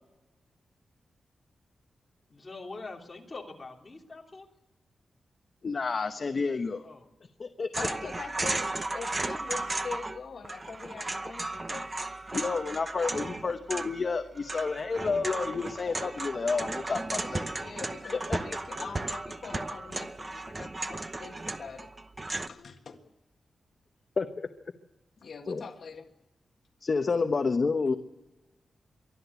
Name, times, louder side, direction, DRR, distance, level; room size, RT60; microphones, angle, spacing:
voice 1, 2.3-4.5 6.8-7.1, left 3 dB, 20° left, -1 dB, 3.2 m, -44 dB
voice 2, 5.6-6.8 7.4-7.7 12.3-17.4 18.3-18.4 24.2-24.5 25.5-25.6 26.8-27.9, left 4 dB, 40° left, 6 dB, 1.0 m, -29 dB
sound 1, 7.7-10.2 10.4-22.5, right 2 dB, 20° right, 0.8 m, -35 dB
voice 3, 7.8-11.9 17.6-21.9 22.4-23.0 25.2-26.1, left 5 dB, 55° left, 4 dB, 1.8 m, -43 dB
24.0 x 14.0 x 8.2 m, 1.0 s
wide cardioid pair, 170°, 0 cm